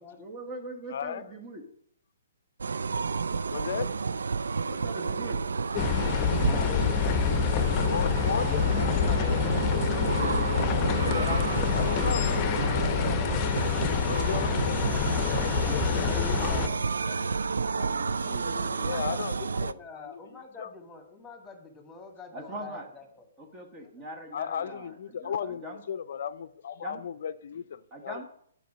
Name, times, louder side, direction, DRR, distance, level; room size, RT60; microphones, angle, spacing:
voice 1, 0.2-1.6 4.7-5.4 9.4-10.4 13.6-13.9 15.9-19.0 22.3-22.9 23.4-25.8 26.8-27.0 27.9-28.2, right 1 dB, 25° right, 1.4 m, -41 dB
voice 2, 0.9-1.3 3.5-3.9 7.9-8.5 11.7-12.5 14.0-14.8 18.8-20.1 20.6-20.7 24.3-28.2, left 8 dB, 60° left, 0.5 m, -35 dB
sound 1, 2.6-19.7, right 4 dB, 75° right, 0.3 m, -30 dB
sound 2, 5.7-16.7, left 8 dB, 30° left, 0.8 m, -27 dB
Engine starting, 7.7-15.8, right 1 dB, 40° right, 3.4 m, -50 dB
voice 3, 18.8-23.3 23.8-23.9, left 4 dB, 10° left, 2.0 m, -47 dB
9.2 x 5.2 x 6.2 m
figure-of-eight pair, 130°, 0 cm